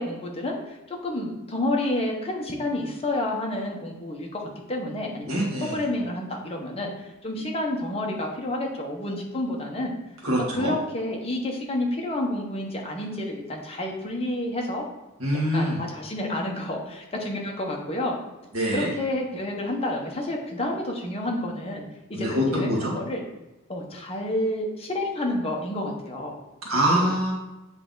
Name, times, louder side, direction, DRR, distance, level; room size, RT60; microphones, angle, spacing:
voice 1, 0.0-5.4 5.7-10.0 10.5-14.9 15.5-18.1 18.7-21.8 22.1-23.2 23.7-26.4 26.9-27.1, left 1 dB, 30° left, 0 dB, 1.0 m, -29 dB
voice 2, 5.3-5.8 10.2-10.7 15.2-15.8 18.5-18.9 22.1-22.9 26.7-27.3, equal, 80° right, -3 dB, 1.8 m, -24 dB
7.7 x 3.3 x 3.9 m, 1.0 s
head